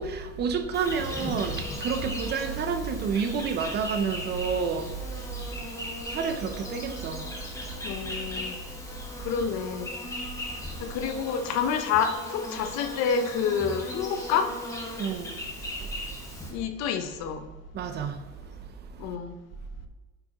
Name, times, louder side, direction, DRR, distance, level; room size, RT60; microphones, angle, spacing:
voice 1, 0.0-7.9 9.2-9.3 10.7-11.0 15.0-15.5 15.8-16.6 17.7-19.1, right 5 dB, 35° right, 0.5 m, -31 dB
Insect, 0.7-16.5, left 1 dB, 10° left, 1.1 m, -38 dB
voice 2, 7.8-8.6 9.2-9.9 10.8-14.6 16.5-17.5 19.0-19.4, left 7 dB, 65° left, 0.7 m, -28 dB
8.8 x 4.7 x 2.9 m
cardioid pair, 160°, 29 cm